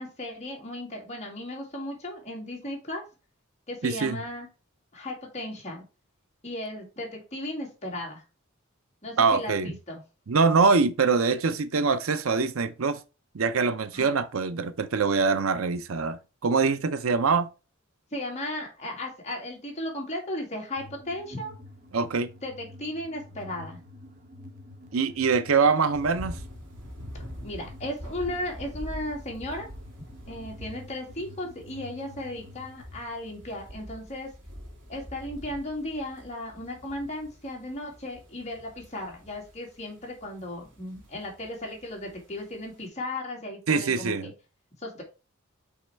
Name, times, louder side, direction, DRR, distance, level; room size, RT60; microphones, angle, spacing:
voice 1, 0.0-3.0 3.7-4.5 4.9-5.8 6.4-8.2 9.0-10.0 13.9-14.1 18.1-21.5 22.4-23.8 27.4-29.7 30.3-34.3 34.9-44.3 44.8-45.0, left 1 dB, 35° left, 2.2 m, -36 dB
voice 2, 3.8-4.2 9.2-9.8 10.3-13.0 13.3-17.5 21.9-22.3 24.9-26.4 43.7-44.3, right 4 dB, 85° right, 0.7 m, -24 dB
sound 1, 20.8-32.8, left 1 dB, 40° right, 1.1 m, -49 dB
sound 2, 25.9-42.8, equal, 60° right, 3.3 m, -45 dB
5.6 x 4.1 x 4.5 m
head